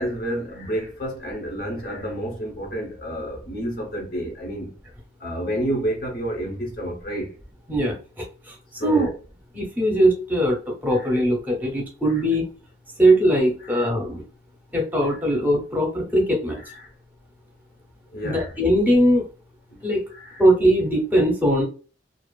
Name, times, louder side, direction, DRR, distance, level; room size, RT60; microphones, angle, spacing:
voice 1, 0.0-4.7 5.2-7.4 8.8-9.2 10.9-11.2 13.6-13.9 15.0-15.2 16.7-16.9 18.1-18.5 19.7-19.8 20.1-20.4, right 1 dB, 55° left, 0.8 m, -30 dB
voice 2, 7.7-8.5 8.8-9.1 9.5-12.4 13.0-14.2 14.7-16.6 18.2-19.3 19.8-20.0 20.4-21.6, right 1 dB, 10° right, 0.7 m, -20 dB
2.5 x 2.4 x 2.3 m
head